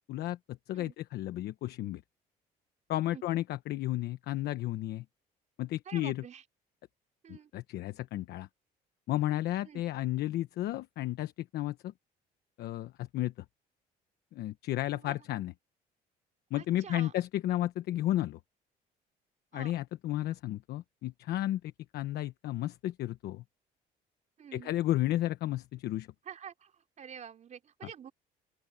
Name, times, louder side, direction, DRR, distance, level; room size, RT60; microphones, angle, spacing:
voice 1, 0.0-2.0 2.9-5.0 5.6-6.2 7.3-8.5 9.1-11.9 12.6-13.3 14.3-15.5 16.5-18.4 19.5-21.6 21.9-23.4 24.5-26.1 27.8-27.9, left 14 dB, 75° left, 1.1 m, -33 dB
voice 2, 5.9-6.4 7.2-7.5 9.7-9.8 15.0-15.2 16.6-17.1 19.5-19.7 24.4-24.7 26.3-26.7 27.0-28.1, right 8 dB, 45° right, 3.6 m, -47 dB
open air
cardioid pair, 110°, 17 cm